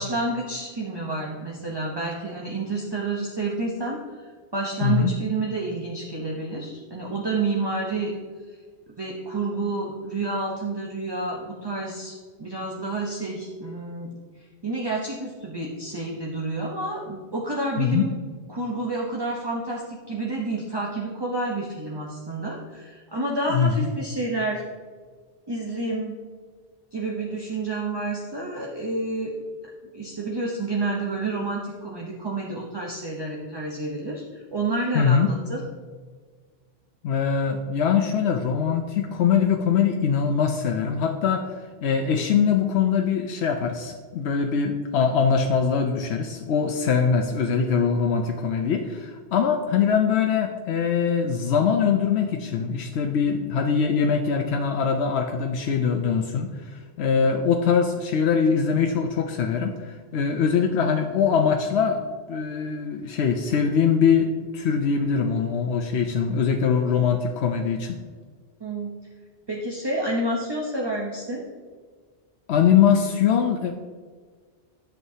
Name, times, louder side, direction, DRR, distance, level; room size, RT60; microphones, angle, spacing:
voice 1, 0.0-4.0 4.5-8.1 9.0-14.1 14.6-18.1 18.5-24.6 25.5-26.1 26.9-29.3 29.9-35.6 68.6-68.9 69.5-71.5, right 2 dB, 25° right, -2 dB, 0.9 m, -29 dB
voice 2, 4.8-5.1 17.8-18.1 23.5-23.9 34.9-35.3 37.0-68.0 72.5-73.7, left 6 dB, 85° left, 4 dB, 0.9 m, -22 dB
11.0 x 7.2 x 2.8 m, 1.5 s
omnidirectional pair, 1.1 m